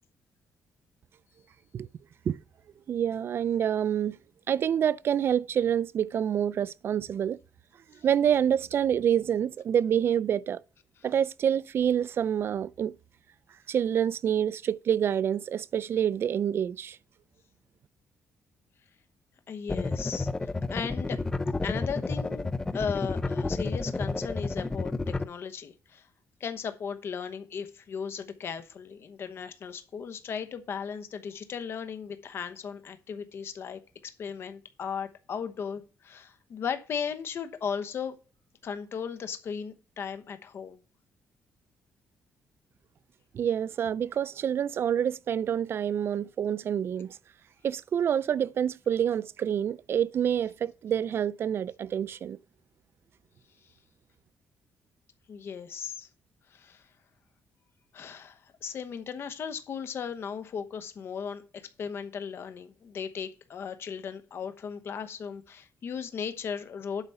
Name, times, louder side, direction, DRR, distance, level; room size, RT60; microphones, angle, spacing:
voice 1, 2.9-4.2 4.5-7.4 8.0-10.6 11.0-12.9 13.7-17.0 43.3-47.2 47.6-52.4, right 9 dB, 50° right, 0.4 m, -27 dB
voice 2, 19.5-20.3 20.7-21.2 21.6-24.9 25.2-26.0 26.4-38.1 38.6-40.8 55.3-56.1 56.5-56.8 57.9-67.0, left 7 dB, 50° left, 1.0 m, -36 dB
sound 1, 19.7-25.2, left 3 dB, 15° left, 0.4 m, -30 dB
8.2 x 4.8 x 5.5 m
cardioid pair, 125°, 5 cm